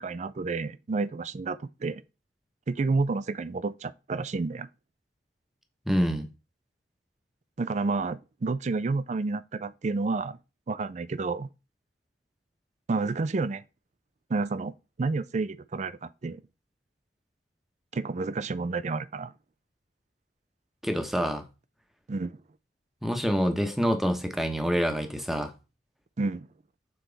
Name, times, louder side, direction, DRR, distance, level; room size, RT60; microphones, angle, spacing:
voice 1, 0.0-2.0 2.7-4.7 7.6-10.4 10.7-11.5 12.9-13.6 14.3-14.7 15.0-16.4 17.9-19.3 22.1-22.4 26.2-26.5, right 3 dB, 40° right, 0.4 m, -30 dB
voice 2, 5.9-6.3 20.8-21.5 23.0-25.5, equal, ahead, 0.9 m, -26 dB
6.9 x 4.4 x 4.0 m
head